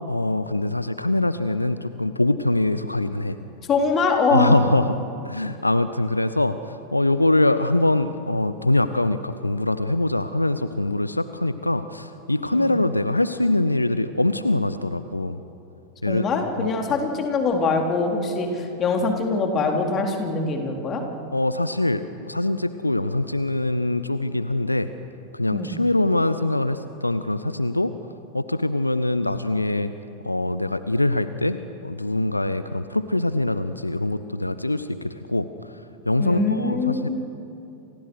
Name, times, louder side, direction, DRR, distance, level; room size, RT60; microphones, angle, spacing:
voice 1, 0.1-3.4 4.3-5.0 5.2-15.4 16.0-16.2 16.6-17.0 21.3-24.9 25.3-27.9 28.3-29.9 30.2-35.5 36.1-37.1, left 2 dB, 85° left, 13 dB, 0.8 m, -23 dB
voice 2, 3.7-4.6 12.5-12.7 16.1-21.0 25.5-25.7 36.2-37.1, left 4 dB, 30° left, 2 dB, 3.9 m, -23 dB
29.5 x 27.5 x 6.4 m, 2.8 s
figure-of-eight pair, 90°, 0 cm